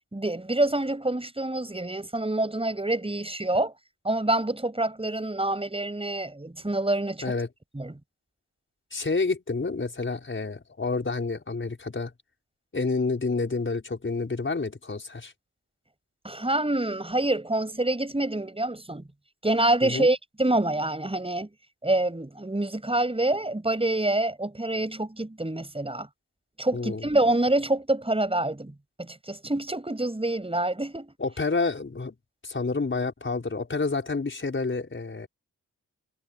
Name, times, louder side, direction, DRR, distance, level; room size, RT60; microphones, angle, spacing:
voice 1, 0.1-3.7 4.0-7.2 7.7-8.0 16.2-19.1 19.4-21.5 21.8-26.1 26.6-31.1, right 2 dB, 15° right, 7.5 m, -26 dB
voice 2, 8.9-12.1 12.7-15.3 19.8-20.1 26.7-27.1 31.2-32.1 32.4-35.3, left 3 dB, 35° left, 5.5 m, -29 dB
supercardioid pair, 50°, 33 cm